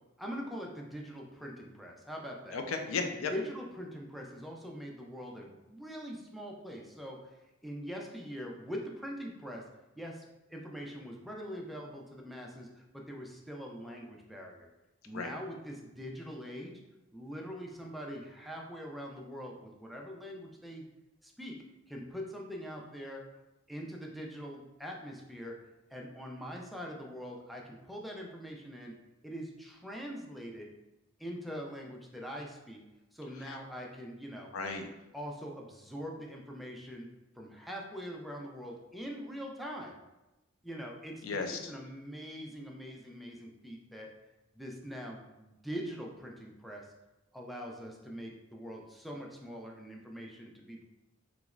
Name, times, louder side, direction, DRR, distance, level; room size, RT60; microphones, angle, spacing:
voice 1, 0.2-2.6 3.3-9.6 10.0-10.2 10.5-14.7 15.0-16.7 17.1-20.8 21.2-21.6 21.9-23.2 23.7-25.6 25.9-29.0 29.2-30.7 31.2-32.8 33.1-34.5 35.1-37.1 37.4-40.0 40.6-44.1 44.5-46.9 47.3-50.8, equal, ahead, -1 dB, 0.3 m, -43 dB
voice 2, 2.5-3.3 15.1-15.3 33.4-33.6 34.5-34.9 41.2-41.7, left 4 dB, 90° left, 5 dB, 0.4 m, -35 dB
3.1 x 2.9 x 2.4 m, 1.0 s
head